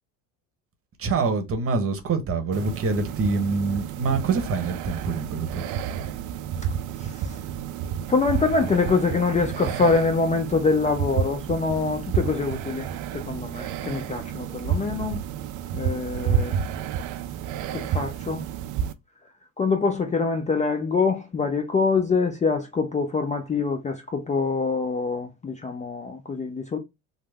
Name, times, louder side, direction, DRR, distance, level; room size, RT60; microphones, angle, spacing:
voice 1, 1.0-5.6, right 4 dB, 35° right, 0.9 m, -25 dB
sound 1, 2.5-18.9, right 8 dB, 50° right, 0.5 m, -30 dB
voice 2, 7.0-7.3 8.1-12.9 13.1-15.2 15.7-16.6 17.7-18.4 19.6-26.8, left 4 dB, 20° left, 0.5 m, -25 dB
3.3 x 2.0 x 3.3 m
supercardioid pair, 85°, 39 cm